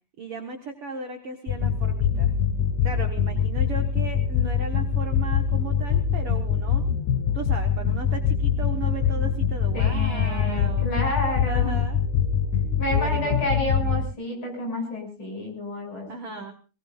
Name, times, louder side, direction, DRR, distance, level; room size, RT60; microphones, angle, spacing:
voice 1, 0.2-2.3 2.8-6.8 7.3-10.9 11.5-12.0 12.9-13.4 16.1-16.5, right 4 dB, 50° right, 4 dB, 1.9 m, -36 dB
sound 1, 1.5-14.1, left 8 dB, 65° left, 2.1 m, -23 dB
voice 2, 9.7-11.8 12.8-16.4, left 1 dB, 30° left, 1 dB, 7.6 m, -30 dB
23.5 x 19.5 x 2.6 m, 0.33 s
omnidirectional pair, 4.4 m